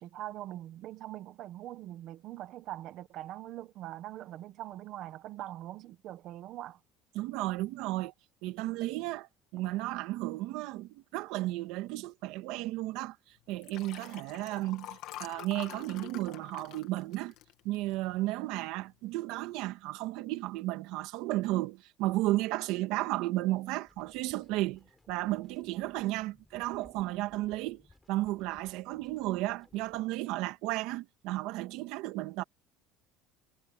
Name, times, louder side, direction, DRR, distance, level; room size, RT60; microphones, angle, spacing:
voice 1, 0.0-6.8, right 13 dB, 45° right, 1.4 m, -42 dB
voice 2, 7.2-8.1 8.4-13.2 13.5-17.3 17.6-27.8 28.1-32.4, right 17 dB, 65° right, 1.9 m, -33 dB
Liquid, 13.5-18.1 18.6-18.9 19.2-19.3, left 15 dB, 55° left, 2.4 m, -46 dB
sound 1, 23.9-30.0, left 2 dB, 10° left, 7.9 m, -63 dB
cardioid pair, 165°, 0 cm